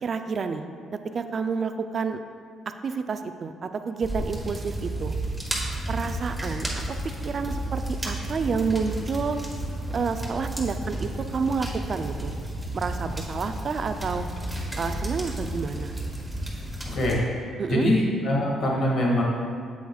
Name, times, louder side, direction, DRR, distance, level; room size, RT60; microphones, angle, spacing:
voice 1, 0.0-2.2 2.8-5.2 5.9-7.0 7.2-9.4 9.9-12.4 12.7-14.2 14.8-16.0 17.6-17.9, right 5 dB, 45° right, 8 dB, 0.4 m, -29 dB
sound 1, 4.0-17.2, right 1 dB, 5° right, 1.6 m, -32 dB
voice 2, 16.8-17.2 17.7-19.2, left 1 dB, 65° left, -3 dB, 1.9 m, -23 dB
8.2 x 7.8 x 2.4 m, 2.2 s
cardioid pair, 90°, 0 cm